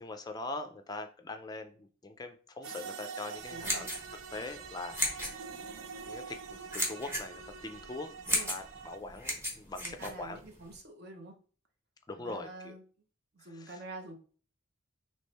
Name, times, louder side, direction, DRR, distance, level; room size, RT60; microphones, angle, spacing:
voice 1, 0.0-3.9 4.3-5.3 6.1-10.4 12.1-12.7 13.6-13.8, left 2 dB, 20° left, 6 dB, 0.4 m, -42 dB
sound 1, 2.6-9.0, right 6 dB, 75° right, 0.4 m, -45 dB
sound 2, 3.4-10.7, equal, 10° right, 1.0 m, -36 dB
voice 2, 3.5-3.9 8.3-8.5 9.8-11.3 12.2-12.8 13.3-14.2, right 2 dB, 50° right, 4 dB, 0.8 m, -47 dB
3.6 x 3.1 x 4.1 m, 0.41 s
head